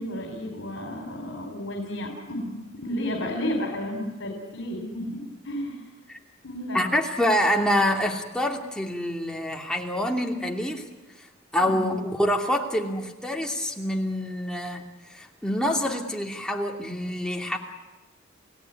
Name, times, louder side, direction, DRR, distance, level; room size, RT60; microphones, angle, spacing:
voice 1, 0.0-5.9 6.4-6.8 11.6-11.9, left 1 dB, 75° left, 3 dB, 4.4 m, -32 dB
voice 2, 6.7-10.9 11.5-17.6, left 1 dB, 5° left, 1 dB, 2.7 m, -26 dB
30.0 x 17.5 x 9.6 m, 1.1 s
head